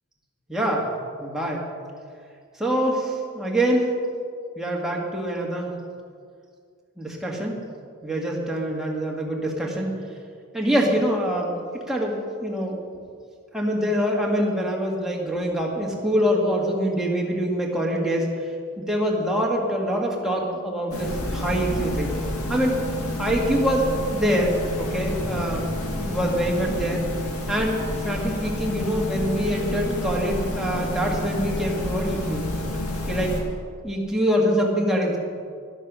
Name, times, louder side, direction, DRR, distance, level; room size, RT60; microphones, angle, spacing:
voice 1, 0.5-0.9 1.2-1.7 2.6-3.9 4.6-5.7 7.0-7.6 8.0-9.9 10.5-11.5 11.9-12.2 12.4-12.8 13.5-18.3 18.8-22.2 22.5-22.8 23.2-25.7 26.0-27.0 27.5-32.5 33.1-33.3 33.8-35.2, equal, ahead, -3 dB, 2.0 m, -24 dB
sound 1, 20.9-33.4, left 1 dB, 70° left, 2.1 m, -29 dB
12.0 x 11.0 x 6.2 m, 2.2 s
head